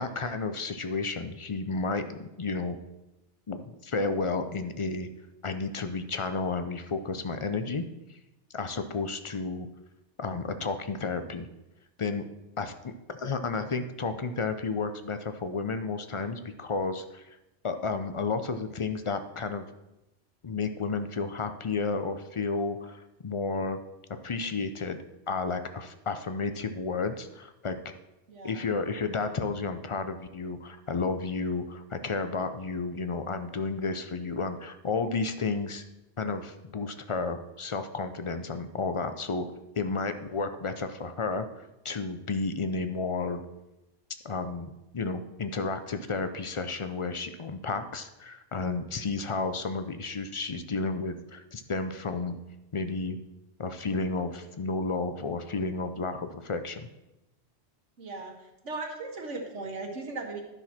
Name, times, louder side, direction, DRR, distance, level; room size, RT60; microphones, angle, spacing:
voice 1, 0.0-2.8 3.5-5.1 5.4-7.8 8.1-8.2 8.5-9.7 10.2-11.5 12.0-12.2 12.6-17.4 17.6-19.7 20.4-23.8 24.2-25.0 25.3-27.8 28.4-35.8 36.2-39.5 39.8-43.4 44.2-52.4 52.7-53.2 53.6-56.9, left 4 dB, 45° left, 9 dB, 0.4 m, -32 dB
voice 2, 28.3-28.7 58.0-60.4, right 3 dB, 85° right, 2 dB, 1.7 m, -38 dB
11.5 x 6.0 x 4.2 m, 0.95 s
omnidirectional pair, 1.2 m